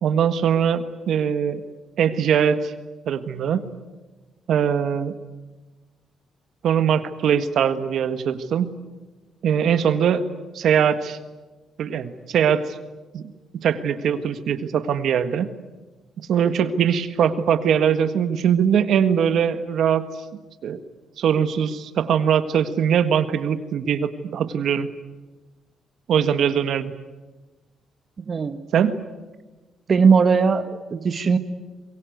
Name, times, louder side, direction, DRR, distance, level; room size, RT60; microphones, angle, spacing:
voice 1, 0.0-1.6 2.0-2.7 3.1-3.7 4.5-5.1 6.6-8.7 9.4-10.2 10.5-11.2 11.8-12.8 13.1-13.2 13.6-15.5 16.2-20.0 20.6-20.8 21.2-24.9 26.1-26.9 28.7-29.0, right 8 dB, 70° right, 10 dB, 1.6 m, -21 dB
voice 2, 28.2-28.6 29.9-31.4, right 5 dB, 45° right, 9 dB, 1.4 m, -19 dB
24.0 x 22.5 x 9.4 m, 1.2 s
cardioid pair, 90°, 0 cm